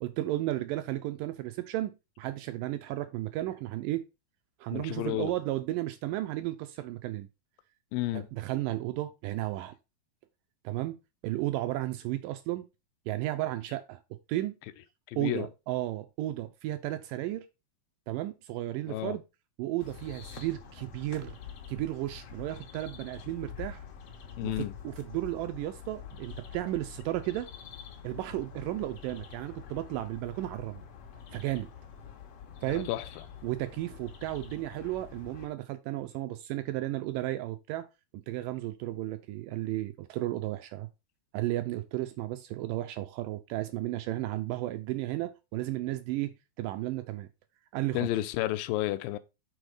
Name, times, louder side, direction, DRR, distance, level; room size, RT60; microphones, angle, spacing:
voice 1, 0.0-4.0 4.6-7.3 8.1-9.7 10.7-11.0 11.2-12.7 13.1-14.0 14.3-14.6 15.2-17.5 18.1-19.2 19.6-21.4 21.7-23.8 24.4-27.5 28.0-30.9 31.3-31.7 32.6-32.9 33.4-37.8 38.1-40.9 41.3-46.3 46.6-47.3 47.7-48.1, right 15 dB, 80° right, 2.1 m, -34 dB
voice 2, 4.7-5.3 7.9-8.3 15.1-15.5 18.9-19.2 24.4-24.7 32.7-33.0 47.9-49.2, left 15 dB, 85° left, 2.3 m, -31 dB
sound 1, 19.8-35.5, left 7 dB, 60° left, 1.7 m, -46 dB
6.4 x 4.1 x 4.9 m
omnidirectional pair, 4.1 m